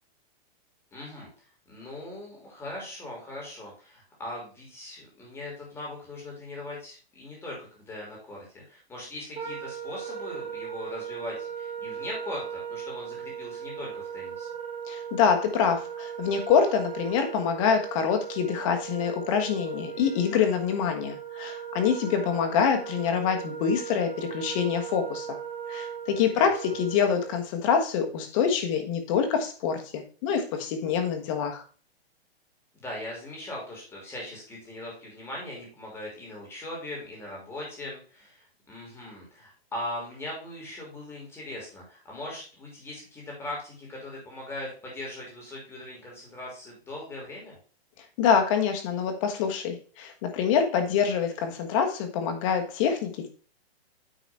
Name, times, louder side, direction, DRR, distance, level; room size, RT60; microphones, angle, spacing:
voice 1, 0.9-1.3 1.7-14.5 26.1-26.5 32.7-47.6, left 1 dB, 10° left, -3 dB, 2.8 m, -40 dB
Wind instrument woodwind instrument, 9.3-27.5, right 8 dB, 25° right, 2.9 m, -38 dB
voice 2, 14.9-25.4 25.7-31.6 48.2-53.3, left 7 dB, 30° left, 5 dB, 1.4 m, -26 dB
9.2 x 4.0 x 4.3 m, 0.39 s
hypercardioid pair, 165°, 31 cm